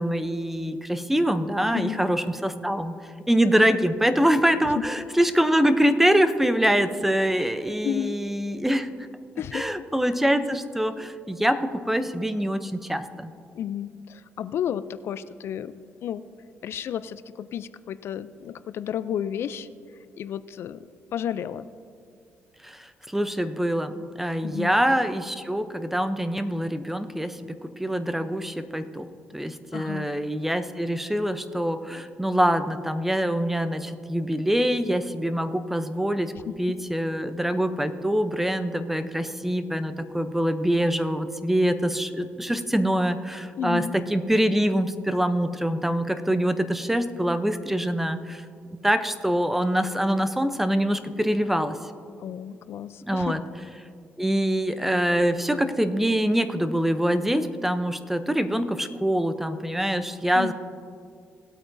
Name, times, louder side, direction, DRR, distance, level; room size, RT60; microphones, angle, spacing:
voice 1, 0.0-2.9 3.3-8.9 9.5-13.3 22.6-29.1 29.3-48.4 48.8-51.8 53.1-53.4 54.2-60.5, equal, 5° right, 10 dB, 0.6 m, -24 dB
voice 2, 1.7-2.1 4.8-4.9 7.8-8.2 9.4-9.7 13.5-15.7 16.0-16.3 16.6-19.7 20.2-20.8 21.1-21.7 24.4-24.7 29.7-30.1 36.3-36.7 43.6-43.9 52.2-53.4 60.3-60.5, left 9 dB, 65° left, 14 dB, 0.3 m, -32 dB
18.5 x 8.5 x 2.6 m, 2.2 s
cardioid pair, 105°, 5 cm